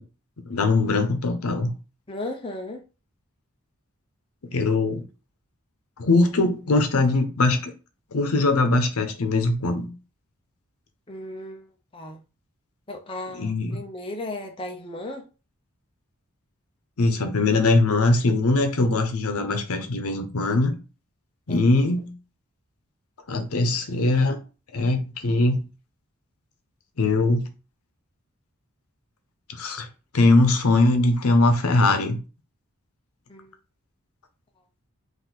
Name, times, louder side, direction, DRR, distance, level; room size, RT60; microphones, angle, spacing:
voice 1, 0.5-1.7 4.5-5.0 6.0-7.7 8.1-9.9 13.4-13.8 17.0-20.8 21.5-22.1 23.3-24.4 24.7-25.6 27.0-27.4 29.5-29.9 30.1-32.2, left 2 dB, 80° left, 0.8 m, -21 dB
voice 2, 2.1-2.8 11.1-11.7 11.9-12.2 12.9-15.3 21.5-21.8 33.3-33.5, left 1 dB, 25° left, 0.5 m, -35 dB
4.1 x 2.6 x 4.0 m
head